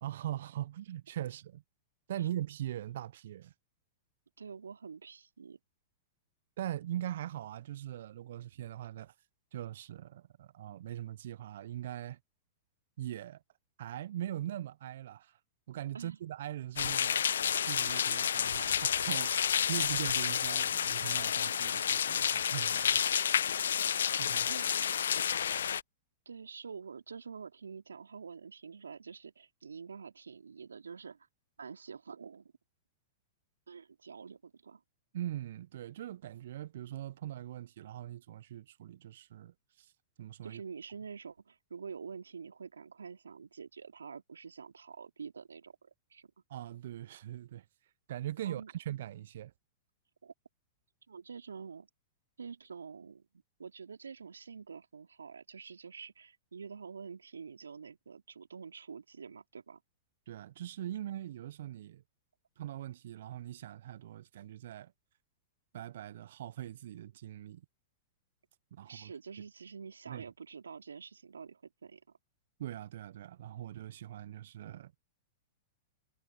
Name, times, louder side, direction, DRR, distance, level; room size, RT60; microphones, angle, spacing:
voice 1, 0.0-1.6 2.1-3.5 6.6-9.1 9.5-12.2 13.0-13.4 13.8-15.4 15.7-17.2 17.6-23.0 24.2-24.5 35.1-39.9 40.2-40.6 46.5-47.6 48.1-49.5 60.3-62.0 62.6-64.9 65.7-67.6 68.7-69.1 70.1-70.2 72.6-75.0, right 12 dB, 60° right, 0.7 m, -41 dB
voice 2, 4.4-5.6 15.9-16.2 24.5-24.7 26.2-31.3 31.6-32.5 33.7-34.8 40.4-46.3 48.4-48.7 50.2-50.3 51.1-51.9 52.4-53.3 53.6-59.8 68.8-72.0, right 5 dB, 80° right, 3.2 m, -47 dB
sound 1, 16.8-25.8, left 8 dB, 70° left, 0.3 m, -30 dB
figure-of-eight pair, 105°, 0 cm